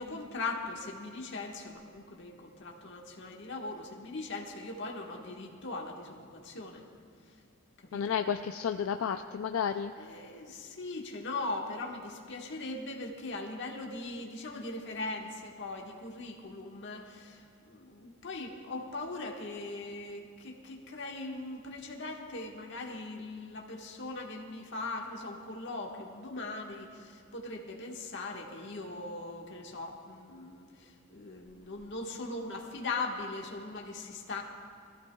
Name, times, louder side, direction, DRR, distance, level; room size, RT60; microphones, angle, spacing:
voice 1, 0.0-6.8 7.2-7.4 7.8-8.2 10.0-34.4, left 2 dB, 60° left, 0 dB, 1.5 m, -40 dB
voice 2, 7.9-9.9, left 7 dB, 85° left, 7 dB, 0.4 m, -31 dB
22.0 x 14.5 x 2.3 m, 2.3 s
head